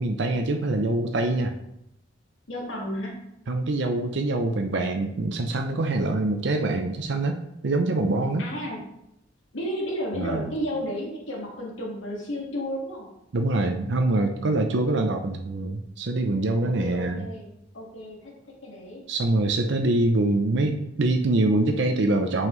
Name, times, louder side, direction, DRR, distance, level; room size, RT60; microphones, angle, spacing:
voice 1, 0.0-1.5 3.5-8.5 10.2-10.5 13.3-17.3 19.1-22.5, right 2 dB, 65° right, 5 dB, 0.6 m, -24 dB
voice 2, 2.5-3.1 8.4-8.8 9.5-13.1 14.7-14.9 16.6-18.3 18.6-19.0, equal, 85° left, -2 dB, 1.9 m, -32 dB
7.7 x 5.6 x 3.2 m, 0.80 s
head